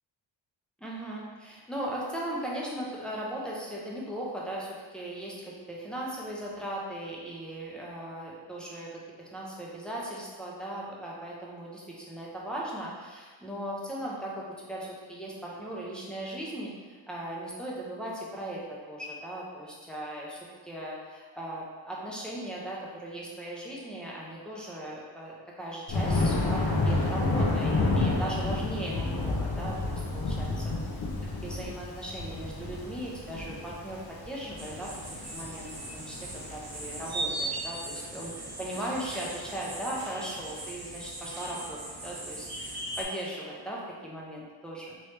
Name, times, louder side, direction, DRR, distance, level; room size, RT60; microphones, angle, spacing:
voice 1, 0.8-30.7 31.4-45.0, right 1 dB, ahead, -5 dB, 0.5 m, -38 dB
Thunder, 25.9-37.0, left 2 dB, 50° left, 0.6 m, -29 dB
sound 1, 34.6-43.0, right 1 dB, 55° right, 0.8 m, -39 dB
3.0 x 3.0 x 3.2 m, 1.4 s
wide cardioid pair, 150°, 46 cm